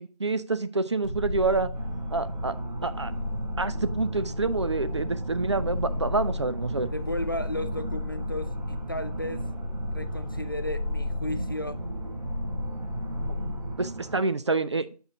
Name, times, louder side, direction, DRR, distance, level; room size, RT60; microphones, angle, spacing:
voice 1, 0.0-1.7 2.1-2.6 2.8-3.1 3.6-6.9 13.2-13.5 13.8-14.9, right 3 dB, 45° right, 0.4 m, -27 dB
sound 1, 1.0-13.7, left 1 dB, 5° right, 0.9 m, -33 dB
sound 2, 1.7-14.2, right 2 dB, 80° right, 1.2 m, -38 dB
voice 2, 6.9-9.4 9.9-11.8, left 1 dB, 35° left, 0.4 m, -34 dB
7.8 x 5.9 x 2.6 m
figure-of-eight pair, 170°, 20 cm